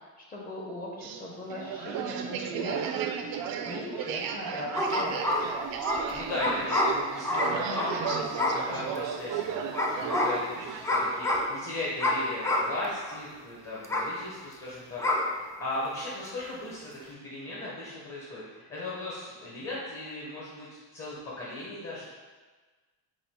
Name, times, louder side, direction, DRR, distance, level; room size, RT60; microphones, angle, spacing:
voice 1, 0.3-3.1 3.6-5.4, left 1 dB, 25° left, -2 dB, 0.7 m, -39 dB
sound 1, 1.0-10.9, right 7 dB, 70° right, 0.5 m, -34 dB
sound 2, 4.7-9.0 9.7-10.5 10.8-11.6 12.0-12.8 13.1-13.2 13.8-14.2 15.0-15.3, left 1 dB, 10° left, 0.3 m, -28 dB
voice 2, 5.9-22.1, left 2 dB, 40° left, -7 dB, 1.0 m, -37 dB
4.9 x 2.3 x 3.6 m, 1.3 s
cardioid pair, 115°, 37 cm